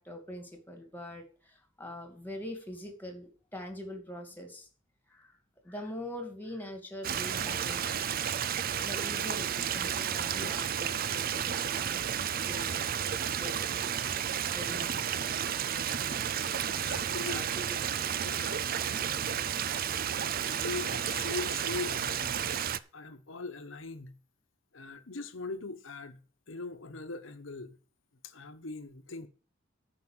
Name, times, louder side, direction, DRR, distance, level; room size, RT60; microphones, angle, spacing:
voice 1, 0.0-4.7 5.1-5.3 5.6-8.1 8.8-13.9 14.5-15.2 17.3-17.8, left 1 dB, 10° left, 2.4 m, -43 dB
Stream, 7.0-22.8, right 8 dB, 50° right, 0.5 m, -32 dB
voice 2, 16.8-17.8 18.2-19.5 20.4-24.2 24.7-26.2 26.5-27.8 28.2-29.3, left 3 dB, 75° left, 1.1 m, -41 dB
10.0 x 5.7 x 7.2 m
head